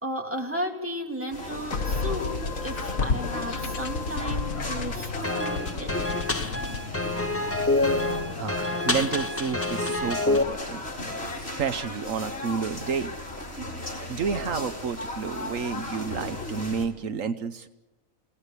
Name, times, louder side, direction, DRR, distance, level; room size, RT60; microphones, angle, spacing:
voice 1, 0.0-5.9, equal, 10° right, 2 dB, 3.2 m, -34 dB
sound 1, 1.3-16.9, left 1 dB, 50° left, 4.7 m, -37 dB
sound 2, 1.7-9.0, left 4 dB, 85° left, 1.9 m, -32 dB
sound 3, 5.2-10.4, left 2 dB, 10° left, 0.8 m, -27 dB
voice 2, 8.4-10.9 11.4-13.1 14.1-17.7, right 6 dB, 80° right, 11 dB, 1.4 m, -30 dB
27.0 x 18.0 x 8.4 m, 1.1 s
omnidirectional pair, 1.4 m